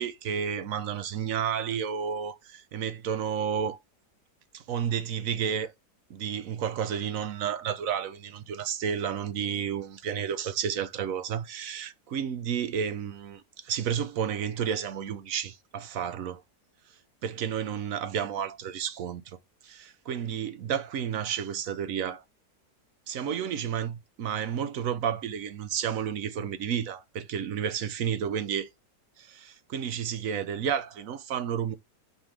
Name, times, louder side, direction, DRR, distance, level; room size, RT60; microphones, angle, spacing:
voice 1, 0.0-3.8 4.5-5.7 6.1-16.4 17.2-19.4 19.6-22.2 23.1-28.7 29.2-31.8, right 8 dB, 60° right, 1.0 m, -31 dB
5.5 x 4.5 x 4.7 m
omnidirectional pair, 1.8 m